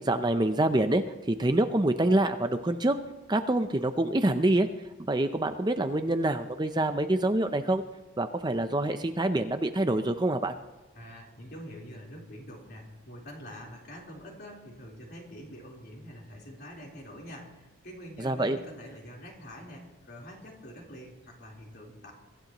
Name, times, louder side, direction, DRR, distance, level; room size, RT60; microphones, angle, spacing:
voice 1, 0.0-3.0 3.3-4.7 5.1-7.8 8.2-10.5 18.2-18.6, right 1 dB, 20° right, 8 dB, 0.5 m, -26 dB
voice 2, 10.9-22.1, equal, 50° left, -2 dB, 4.0 m, -46 dB
24.0 x 14.5 x 3.0 m, 1.1 s
head